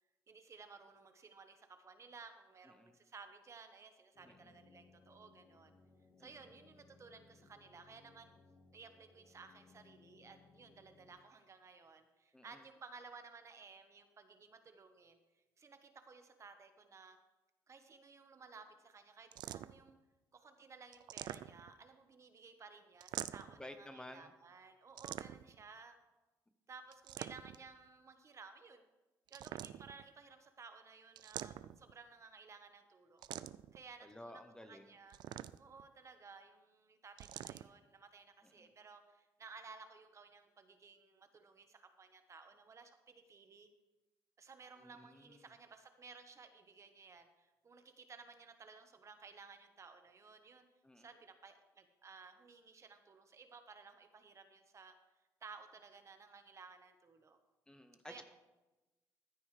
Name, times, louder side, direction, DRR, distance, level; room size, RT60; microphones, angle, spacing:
voice 1, 0.3-5.7 6.2-8.3 8.7-15.2 15.6-17.2 17.7-20.0 20.3-26.0 26.7-28.8 29.3-33.3 33.7-35.2 35.6-43.7 44.4-50.6 51.0-54.9 55.4-57.4 58.0-58.2, right 4 dB, 40° right, 7 dB, 1.2 m, -57 dB
sound 1, 4.1-11.1, left 4 dB, 55° left, 3.4 m, -66 dB
voice 2, 4.2-4.5 6.2-6.3 12.3-12.6 23.6-24.3 34.0-35.0 38.4-38.7 44.8-45.4 50.8-51.1 57.7-58.2, left 1 dB, 10° left, 8 dB, 0.9 m, -54 dB
sound 2, 19.3-19.9 20.9-21.8 23.0-23.6 25.0-25.6 26.9-27.7 29.3-30.0 31.2-31.9 33.2-33.8 35.1-35.8 37.2-37.7, right 12 dB, 70° right, 0.4 m, -46 dB
14.5 x 9.2 x 3.3 m, 1.1 s
cardioid pair, 90°, 8 cm